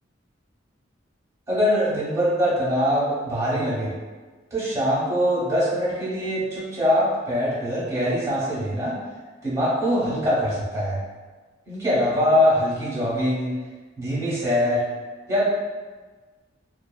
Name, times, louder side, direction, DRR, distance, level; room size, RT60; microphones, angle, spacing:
voice 1, 1.5-3.9 4.5-9.0 9.4-11.0 11.7-13.6 14.0-14.8 15.3-15.5, equal, 15° right, -10 dB, 0.9 m, -23 dB
2.6 x 2.4 x 2.2 m, 1.3 s
head